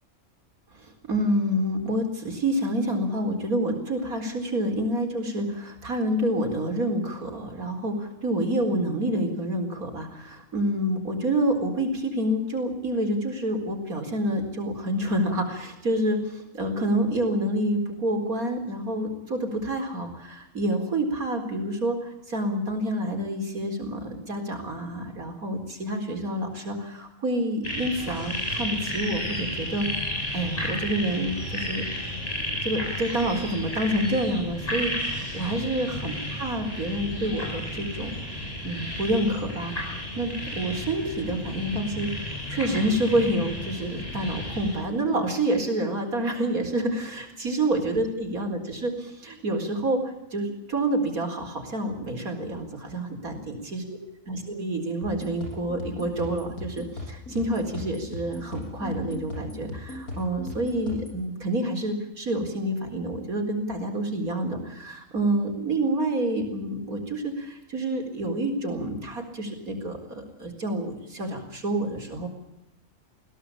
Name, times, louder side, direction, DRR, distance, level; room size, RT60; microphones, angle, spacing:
voice 1, 0.7-29.9 30.3-31.8 32.6-38.1 38.6-54.0 54.3-72.3, right 1 dB, 90° right, 4 dB, 4.7 m, -28 dB
sound 1, 27.6-44.8, left 1 dB, 25° left, 6.9 m, -33 dB
sound 2, 55.0-61.2, left 2 dB, 90° left, 7.1 m, -38 dB
22.0 x 17.0 x 8.6 m, 0.87 s
omnidirectional pair, 1.5 m